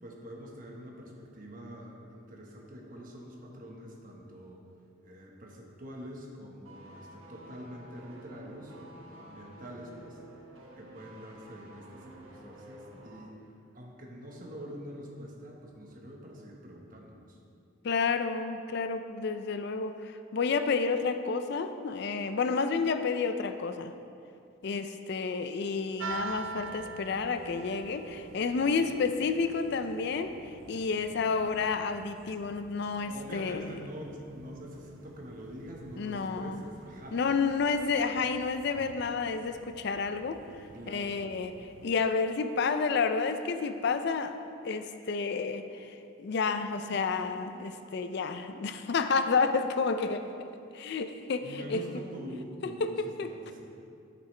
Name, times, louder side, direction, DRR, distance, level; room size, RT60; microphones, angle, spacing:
voice 1, 0.0-4.6 5.0-10.2 10.8-13.3 13.7-17.4 28.8-28.9 33.0-37.2 40.7-41.4 51.4-53.6, equal, 45° right, -1 dB, 1.3 m, -45 dB
sound 1, 6.7-13.3 13.6-13.8, right 1 dB, 90° right, 1.3 m, -51 dB
voice 2, 17.8-23.9 24.6-33.7 36.0-36.6 37.1-40.4 40.9-44.3 44.6-50.3 50.7-51.9 52.8-53.3, left 4 dB, 55° left, 9 dB, 0.4 m, -30 dB
sound 2, 26.0-42.0, right 4 dB, 65° right, 0.4 m, -47 dB
11.0 x 8.3 x 3.3 m, 2.6 s
head